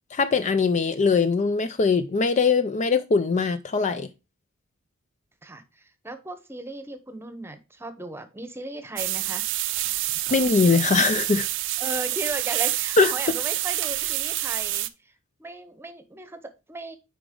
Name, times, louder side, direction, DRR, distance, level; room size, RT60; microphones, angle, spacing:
voice 1, 0.1-4.1 10.3-11.5 13.0-13.1, left 4 dB, 35° left, 0.4 m, -21 dB
voice 2, 5.4-9.4 11.8-15.1 15.4-17.0, right 2 dB, 10° right, 0.9 m, -36 dB
sound 1, 9.0-14.9, right 15 dB, 65° right, 0.5 m, -27 dB
8.5 x 5.0 x 3.7 m
head